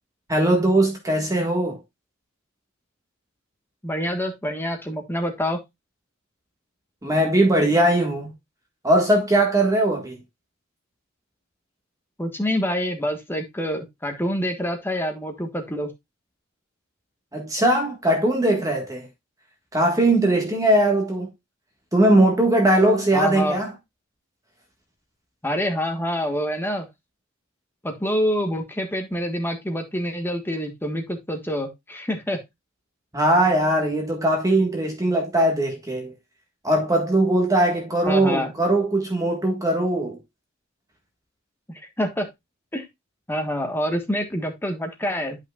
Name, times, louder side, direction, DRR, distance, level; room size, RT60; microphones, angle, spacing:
voice 1, 0.3-1.8 7.0-8.3 8.8-10.2 17.3-19.1 19.7-21.3 21.9-23.7 33.1-36.1 36.6-40.2, right 1 dB, 15° right, 1.6 m, -20 dB
voice 2, 3.8-5.6 12.2-15.9 23.1-23.6 25.4-26.9 27.8-32.4 38.0-38.5 41.7-42.3 42.7-42.9 43.3-45.4, equal, 10° left, 1.4 m, -26 dB
10.5 x 5.7 x 2.4 m
head